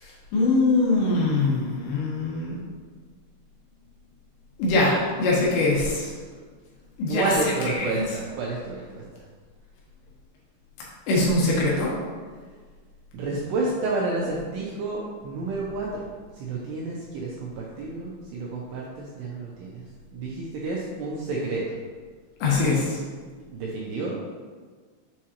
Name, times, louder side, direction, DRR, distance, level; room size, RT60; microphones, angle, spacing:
voice 1, 0.3-2.6 4.6-6.1 7.0-8.2 11.1-11.9 22.4-23.0, left 2 dB, 75° left, -4 dB, 3.1 m, -23 dB
voice 2, 7.1-9.0 13.1-16.0 16.4-19.8 20.1-21.6 23.5-24.2, right 3 dB, 80° right, -4 dB, 2.4 m, -30 dB
7.4 x 4.7 x 2.9 m, 1.5 s
omnidirectional pair, 5.5 m